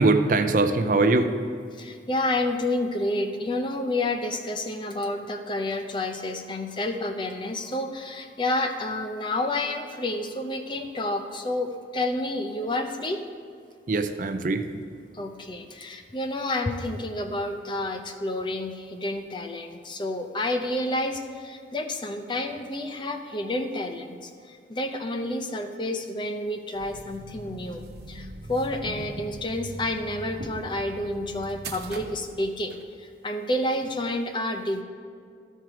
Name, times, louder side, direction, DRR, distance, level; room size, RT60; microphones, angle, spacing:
voice 1, 0.0-1.3 13.9-14.8, right 3 dB, 50° right, 8 dB, 0.4 m, -22 dB
voice 2, 1.8-13.2 15.1-34.8, left 1 dB, 25° left, 5 dB, 0.5 m, -29 dB
sound 1, 26.7-32.8, right 2 dB, 65° right, 0.8 m, -40 dB
13.5 x 4.5 x 4.9 m, 2.2 s
head